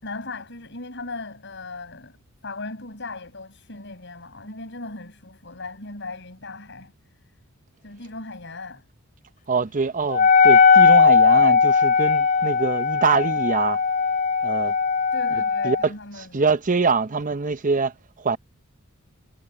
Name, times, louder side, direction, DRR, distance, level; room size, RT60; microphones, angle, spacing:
voice 1, 0.0-6.9 7.8-8.8 15.1-16.4, left 3 dB, 55° left, 7.8 m, -37 dB
voice 2, 9.5-13.8 14.4-14.7 15.6-15.8 16.2-18.4, right 4 dB, 35° right, 0.7 m, -24 dB
Wind instrument woodwind instrument, 10.1-15.9, left 5 dB, 35° left, 0.3 m, -18 dB
head